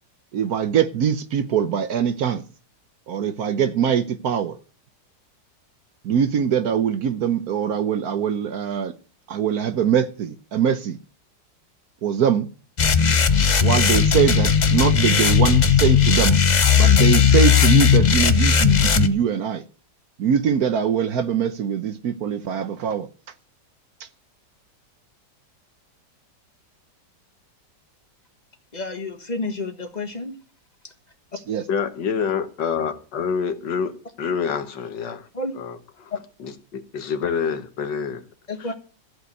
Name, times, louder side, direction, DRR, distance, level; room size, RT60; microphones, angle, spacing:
voice 1, 0.3-2.4 3.1-4.6 6.0-8.9 9.3-11.0 12.0-12.5 13.6-16.4 16.7-19.6 20.2-23.1 24.0-24.1 31.5-31.6, right 8 dB, 65° right, 1.2 m, -22 dB
sound 1, 12.8-19.1, left 7 dB, 45° left, 0.5 m, -16 dB
voice 2, 28.7-30.3 35.3-35.5 38.5-38.7, left 2 dB, 25° left, 1.5 m, -30 dB
voice 3, 31.7-35.3 35.5-36.1 36.4-38.2 38.6-38.7, left 6 dB, 75° left, 1.8 m, -27 dB
14.5 x 5.2 x 8.2 m
omnidirectional pair, 1.9 m